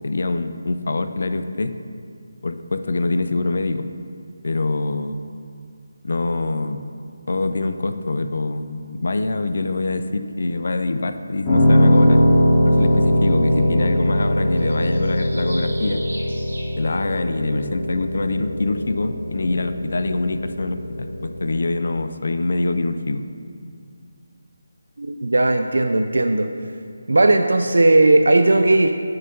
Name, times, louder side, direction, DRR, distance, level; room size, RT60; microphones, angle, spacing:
voice 1, 0.0-1.7 2.4-3.9 4.4-5.2 6.0-6.8 7.3-12.2 12.7-16.0 16.8-23.2, left 3 dB, 50° left, 9 dB, 0.3 m, -24 dB
Piano, 11.4-21.6, equal, 10° left, 1.2 m, -20 dB
sound 1, 11.9-12.0 13.1-13.2 13.5-16.6, right 1 dB, 60° right, 1.5 m, -39 dB
voice 2, 25.0-26.5 27.1-28.9, right 2 dB, 80° right, 6 dB, 0.3 m, -16 dB
6.3 x 4.6 x 5.2 m, 2.3 s
figure-of-eight pair, 175°, 0 cm